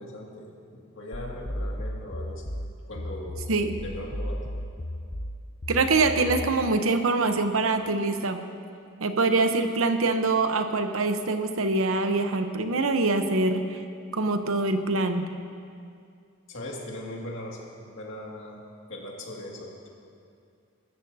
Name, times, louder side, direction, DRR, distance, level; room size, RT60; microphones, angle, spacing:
voice 1, 0.0-2.5 2.9-3.4 3.8-4.4 16.5-18.6 18.9-19.9, left 1 dB, 60° left, -2 dB, 2.2 m, -39 dB
sound 1, 1.1-6.6, left 1 dB, 25° left, 0.7 m, -34 dB
voice 2, 5.7-8.4 9.0-13.8 14.1-15.3, right 3 dB, 75° right, 7 dB, 0.9 m, -24 dB
23.0 x 13.5 x 2.8 m, 2.4 s
head